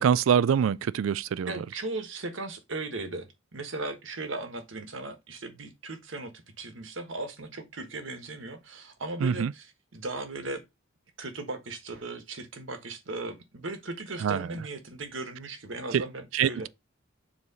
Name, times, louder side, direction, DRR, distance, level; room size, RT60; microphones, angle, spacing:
voice 1, 0.0-1.5 9.2-9.5 14.2-14.4 15.9-16.0 16.3-16.7, right 8 dB, 90° right, 0.3 m, -24 dB
voice 2, 1.5-10.6 11.2-16.7, right 2 dB, 70° right, 1.4 m, -37 dB
7.2 x 3.1 x 5.4 m
head